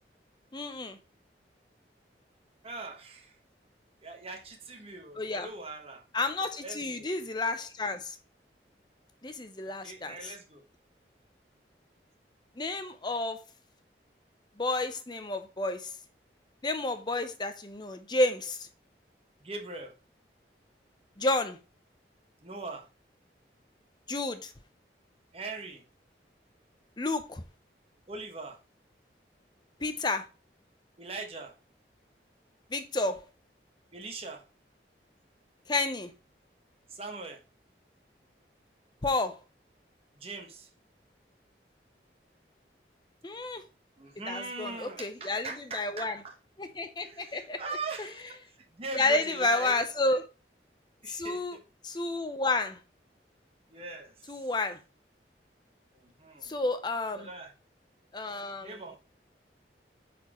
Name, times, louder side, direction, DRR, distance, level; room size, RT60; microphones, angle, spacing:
voice 1, 0.5-1.0 5.2-5.5 6.1-8.2 9.2-10.3 12.6-13.4 14.6-15.9 16.6-18.7 21.2-21.6 24.1-24.5 27.0-27.4 29.8-30.3 32.7-33.2 35.7-36.1 39.0-39.4 43.2-43.6 44.3-46.2 46.6-47.6 48.0-48.1 48.9-50.2 51.1-51.6 51.8-52.8 54.3-54.8 56.4-57.3 58.1-59.0, left 2 dB, 25° left, 0.6 m, -31 dB
voice 2, 2.6-3.4 4.0-6.0 6.6-7.1 9.6-10.6 19.4-19.9 22.4-22.9 25.3-25.8 28.1-28.6 31.0-31.5 33.9-34.4 36.9-37.4 40.1-40.7 44.0-46.4 47.0-48.4 48.7-49.8 50.1-50.2 51.0-51.6 53.7-54.4 55.9-56.5 57.1-57.5 58.6-59.0, right 3 dB, 35° right, 1.2 m, -41 dB
8.2 x 4.3 x 3.0 m
head